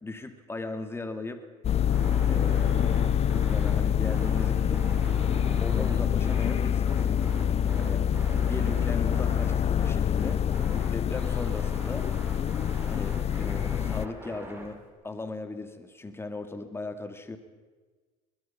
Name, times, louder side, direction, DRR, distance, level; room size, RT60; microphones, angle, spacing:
voice 1, 0.0-1.4 2.2-2.8 3.4-4.9 5.6-7.1 7.8-8.0 8.4-10.4 10.9-12.1 12.8-17.4, left 2 dB, 15° left, 8 dB, 2.4 m, -38 dB
sound 1, 1.6-14.1, left 9 dB, 35° left, 0.6 m, -26 dB
sound 2, 1.9-14.9, right 1 dB, 10° right, 6.5 m, -43 dB
23.5 x 21.0 x 5.9 m, 1.3 s
supercardioid pair, 100°, 18 cm